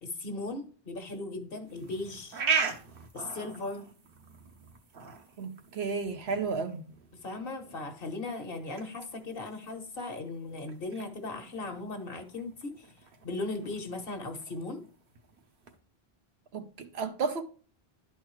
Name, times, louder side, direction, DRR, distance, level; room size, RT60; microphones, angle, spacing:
voice 1, 0.0-2.4 3.1-3.9 7.2-12.9 13.2-14.8, left 2 dB, 65° left, 1.3 m, -37 dB
sound 1, 1.7-15.8, right 5 dB, 65° right, 1.2 m, -39 dB
voice 2, 5.4-6.8 16.5-17.4, right 5 dB, 90° right, 1.1 m, -33 dB
11.5 x 4.2 x 3.1 m
omnidirectional pair, 1.0 m